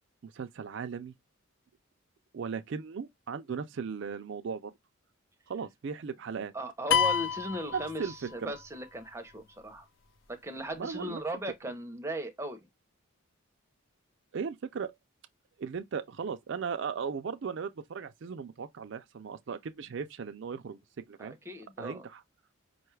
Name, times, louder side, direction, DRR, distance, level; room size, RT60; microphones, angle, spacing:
voice 1, 0.2-1.1 2.3-4.7 5.5-6.5 7.7-8.5 10.8-11.2 14.3-14.9 15.6-21.4 21.8-22.2, right 6 dB, 55° right, 0.4 m, -37 dB
voice 2, 6.5-9.9 10.3-12.7 21.2-22.0, equal, 10° right, 0.6 m, -38 dB
sound 1, 6.9-8.6, left 7 dB, 60° left, 0.5 m, -28 dB
5.1 x 2.3 x 3.1 m
head